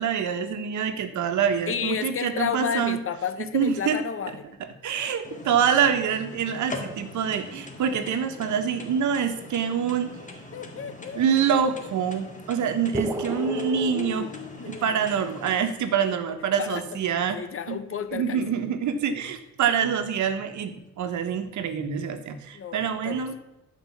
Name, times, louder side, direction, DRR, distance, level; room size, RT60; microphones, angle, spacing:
voice 1, 0.0-3.0 3.5-4.0 4.8-10.1 11.1-14.3 14.6-17.4 17.7-17.8 18.1-23.3, right 7 dB, 70° right, 8 dB, 1.3 m, -26 dB
voice 2, 1.7-4.5 10.5-11.6 13.2-15.7 16.0-16.2 16.6-16.8 17.3-18.4 22.5-23.3, left 7 dB, 45° left, 11 dB, 1.0 m, -32 dB
sound 1, 5.2-15.5, left 2 dB, 25° left, 2.1 m, -42 dB
sound 2, 12.9-14.9, right 2 dB, 10° right, 1.3 m, -33 dB
11.5 x 5.3 x 7.2 m, 0.92 s
cardioid pair, 90°, 30 cm